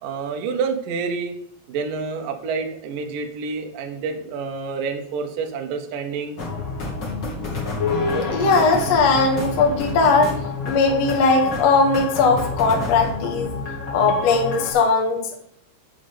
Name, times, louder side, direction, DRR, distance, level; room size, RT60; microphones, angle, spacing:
voice 1, 0.0-1.3 1.7-6.4, right 5 dB, 90° right, 3 dB, 1.9 m, -28 dB
sound 1, 6.4-14.7, left 3 dB, 45° left, 1.3 m, -29 dB
voice 2, 7.8-10.3 10.7-13.5 13.9-15.4, left 4 dB, 75° left, 2 dB, 1.5 m, -19 dB
8.3 x 5.2 x 7.0 m, 0.68 s
omnidirectional pair, 5.8 m